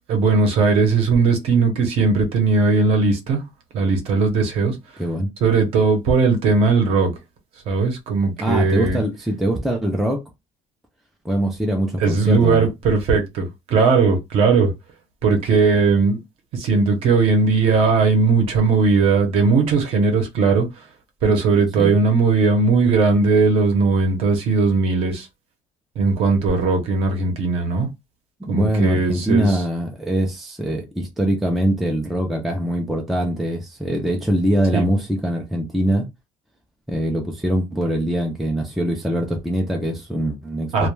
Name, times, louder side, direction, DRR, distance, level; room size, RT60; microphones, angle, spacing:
voice 1, 0.1-3.4 3.7-4.7 5.4-7.1 7.7-9.0 12.0-14.7 15.2-16.2 16.5-20.7 21.2-25.3 26.0-27.9 28.5-29.6 34.7-34.8 40.7-40.9, right 4 dB, 50° right, 0.7 m, -18 dB
voice 2, 5.0-5.3 8.4-10.2 11.2-12.7 21.8-22.0 28.4-36.1 36.9-40.9, right 1 dB, ahead, 0.3 m, -23 dB
2.2 x 2.1 x 3.0 m
cardioid pair, 175°, 13 cm